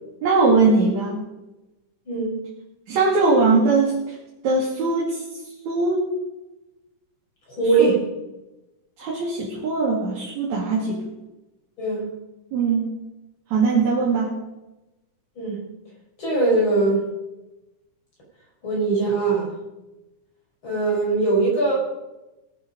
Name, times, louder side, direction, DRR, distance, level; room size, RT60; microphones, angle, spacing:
voice 1, 0.2-1.2 2.9-4.2 4.4-5.2 5.7-6.0 7.8-7.9 9.0-11.0 12.5-12.9 13.5-14.3, right 3 dB, 60° right, -5 dB, 3.7 m, -20 dB
voice 2, 2.1-2.4 7.5-8.1 11.8-12.1 15.4-15.6 16.2-17.0 18.6-19.5 20.6-21.7, right 3 dB, 35° left, -4 dB, 6.3 m, -21 dB
20.5 x 9.1 x 5.3 m, 1.0 s
omnidirectional pair, 3.7 m